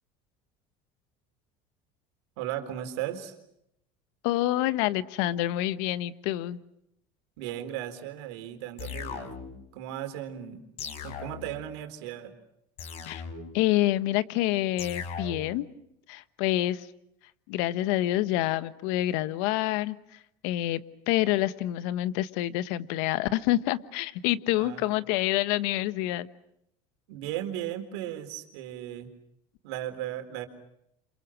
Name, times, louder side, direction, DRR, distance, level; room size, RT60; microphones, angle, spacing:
voice 1, 2.4-3.4 7.4-9.3 9.7-10.6 11.0-12.3 24.6-24.8 27.1-29.1 29.6-30.5, right 12 dB, 85° right, 7 dB, 4.1 m, -36 dB
voice 2, 4.2-6.6 13.1-13.2 13.5-15.7 16.1-16.9 17.5-20.0 20.4-20.8 21.1-26.3, left 15 dB, 75° left, 15 dB, 1.3 m, -27 dB
sound 1, 8.8-9.7 10.8-11.7 12.8-13.7 14.8-15.7, left 6 dB, 50° left, 4.5 m, -38 dB
30.0 x 27.0 x 6.4 m, 0.77 s
supercardioid pair, 115°, 14 cm